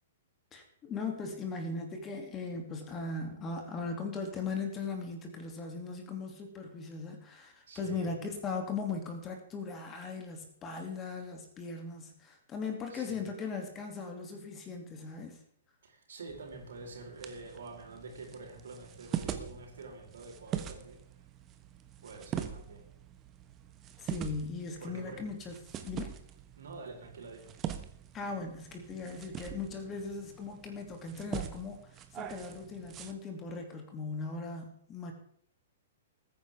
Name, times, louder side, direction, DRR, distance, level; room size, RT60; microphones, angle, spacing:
voice 1, 0.5-15.4 24.0-25.5 25.8-26.2 28.1-31.8 32.1-35.1, left 4 dB, 20° left, 3 dB, 2.7 m, -38 dB
voice 2, 7.7-8.1 12.9-13.2 15.8-21.0 22.0-22.9 24.8-25.2 26.6-27.5, right 3 dB, 65° right, 0 dB, 4.4 m, -46 dB
sound 1, 16.3-33.1, right 9 dB, 25° right, 1.2 m, -43 dB
21.0 x 9.7 x 3.6 m, 0.64 s
figure-of-eight pair, 110°, 0 cm